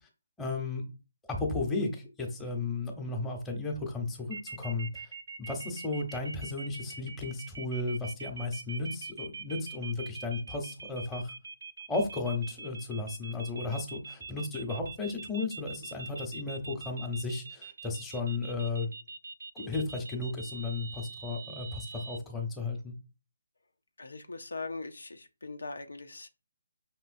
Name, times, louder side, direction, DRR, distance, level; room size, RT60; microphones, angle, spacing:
voice 1, 0.4-0.8 1.3-5.1 5.4-11.3 11.9-18.9 19.5-22.9, left 3 dB, 10° left, 1 dB, 0.9 m, -34 dB
sound 1, 4.3-22.2, right 4 dB, 65° right, 0.5 m, -43 dB
voice 2, 24.0-26.3, left 3 dB, 80° left, 7 dB, 0.6 m, -40 dB
5.6 x 3.0 x 2.6 m, 0.29 s
figure-of-eight pair, 150°, 0 cm